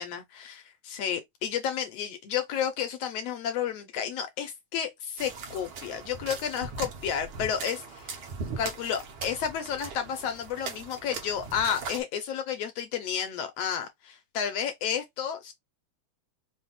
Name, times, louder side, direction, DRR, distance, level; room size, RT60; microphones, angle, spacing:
voice 1, 0.0-8.2 8.6-15.5, left 8 dB, 75° left, 1.5 m, -31 dB
sound 1, 5.2-12.0, right 4 dB, 60° right, 1.4 m, -39 dB
5.5 x 2.1 x 4.1 m
omnidirectional pair, 3.5 m